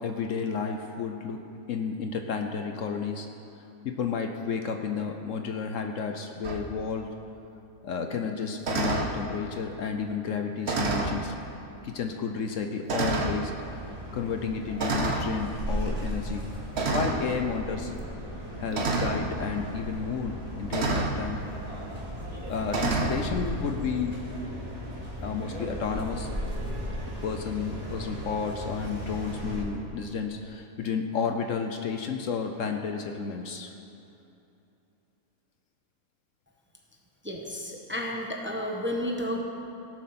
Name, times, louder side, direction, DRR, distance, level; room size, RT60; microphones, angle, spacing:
voice 1, 0.0-3.3 3.8-7.1 7.8-11.3 11.8-13.5 14.1-16.5 16.9-17.9 18.6-21.4 22.5-24.2 25.2-26.3 27.1-33.7, left 5 dB, 65° left, 5 dB, 1.1 m, -31 dB
sound 1, 6.4-6.6 8.6-9.1 10.6-11.2 12.0-12.1 12.9-13.4 14.8-15.3 16.7-17.2 18.7-19.2 20.7-21.2 22.7-23.2, right 3 dB, 50° right, 1.3 m, -27 dB
sound 2, 13.6-29.6, equal, 25° right, 2.4 m, -36 dB
voice 2, 37.2-39.4, left 1 dB, 10° right, 0 dB, 1.1 m, -32 dB
17.0 x 7.6 x 6.0 m, 2.8 s
omnidirectional pair, 1.5 m